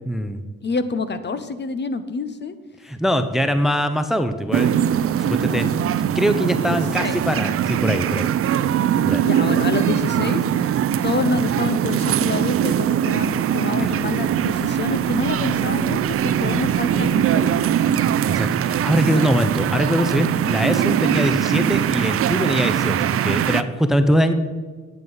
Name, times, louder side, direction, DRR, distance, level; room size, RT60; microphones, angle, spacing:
voice 1, 0.1-0.4 2.8-4.7 5.2-5.7 6.1-8.3 9.0-9.3 13.6-13.9 18.3-24.3, equal, ahead, 9 dB, 0.6 m, -22 dB
voice 2, 0.6-2.5 6.7-7.2 9.2-10.8 11.0-17.5 19.1-19.4, left 4 dB, 35° left, 12 dB, 0.8 m, -27 dB
sound 1, 4.5-23.6, right 10 dB, 50° right, 0.5 m, -21 dB
sound 2, 13.9-19.0 22.9-23.0, equal, 15° left, 1.3 m, -39 dB
9.6 x 8.0 x 5.4 m, 1.4 s
cardioid pair, 90°, 30 cm